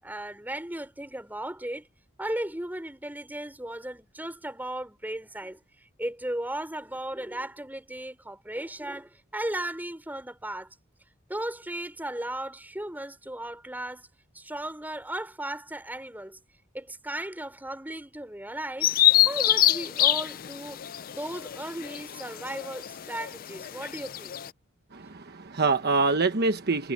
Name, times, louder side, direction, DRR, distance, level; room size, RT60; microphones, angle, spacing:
voice 1, 0.0-1.9 2.2-5.6 6.0-10.7 11.3-14.1 14.3-16.4 16.7-18.9 19.2-20.8 21.1-24.4, right 1 dB, 10° right, 5.0 m, -36 dB
Bird vocalization bird call bird song, 18.8-24.5, left 14 dB, 45° left, 0.4 m, -25 dB
voice 2, 24.9-26.9, right 3 dB, 55° right, 1.2 m, -25 dB
head